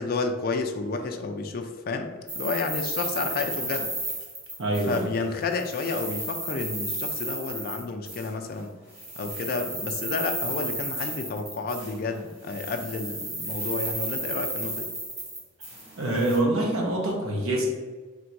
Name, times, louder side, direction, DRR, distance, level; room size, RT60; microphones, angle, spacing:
voice 1, 0.0-3.9 4.9-8.7 9.2-14.9, left 3 dB, 45° left, 5 dB, 0.3 m, -31 dB
sound 1, 2.3-5.2 5.5-8.3 8.9-12.2 12.4-16.4, right 1 dB, 30° right, 1.4 m, -33 dB
voice 2, 4.6-5.1 16.0-17.7, right 1 dB, 80° right, -2 dB, 0.8 m, -25 dB
3.6 x 2.6 x 4.4 m, 1.4 s
head